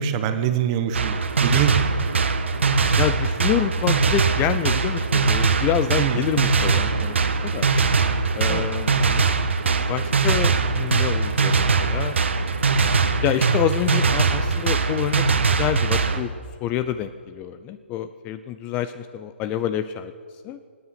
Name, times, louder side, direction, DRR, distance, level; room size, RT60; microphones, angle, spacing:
voice 1, 0.0-1.7 6.0-6.2 8.5-8.8, right 9 dB, 30° right, 9 dB, 1.2 m, -24 dB
sound 1, 0.9-16.2, right 4 dB, 70° right, 1.3 m, -21 dB
voice 2, 3.0-7.1 7.4-7.7 8.3-9.2 9.9-12.2 13.2-16.3 16.6-20.1 20.4-20.6, left 11 dB, 20° left, 12 dB, 0.4 m, -27 dB
25.5 x 9.6 x 5.9 m, 2.1 s
hypercardioid pair, 145°, 7 cm